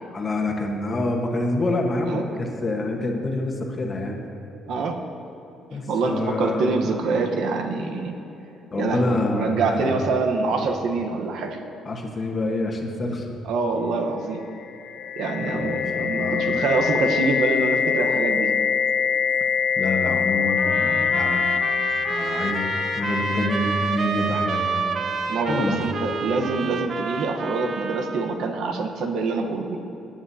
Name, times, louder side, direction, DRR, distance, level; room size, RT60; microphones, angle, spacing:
voice 1, 0.1-4.2 5.7-6.8 8.7-10.0 10.6-10.7 11.8-13.3 15.4-16.6 19.8-21.5 22.1-24.8 25.5-25.8, left 2 dB, 25° left, 1 dB, 1.3 m, -27 dB
voice 2, 4.7-5.0 5.9-8.2 8.8-11.6 13.4-14.4 15.2-18.5 25.3-29.8, right 3 dB, 65° right, 4 dB, 1.0 m, -25 dB
sound 1, 14.6-24.5, left 7 dB, 65° left, 0.3 m, -24 dB
sound 2, 20.6-28.3, right 5 dB, 40° right, 0.5 m, -29 dB
19.0 x 8.8 x 2.8 m, 3.0 s
cardioid pair, 155°, 0 cm